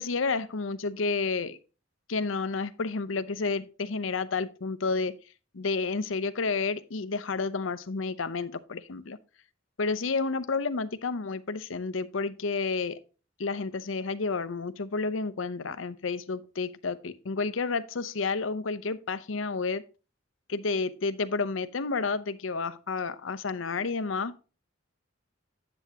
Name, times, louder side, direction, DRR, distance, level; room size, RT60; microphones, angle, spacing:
voice 1, 0.0-1.6 2.1-5.1 5.5-9.2 9.8-13.0 13.4-19.8 20.5-24.4, left 4 dB, 90° left, 0.7 m, -30 dB
10.0 x 7.8 x 2.8 m
head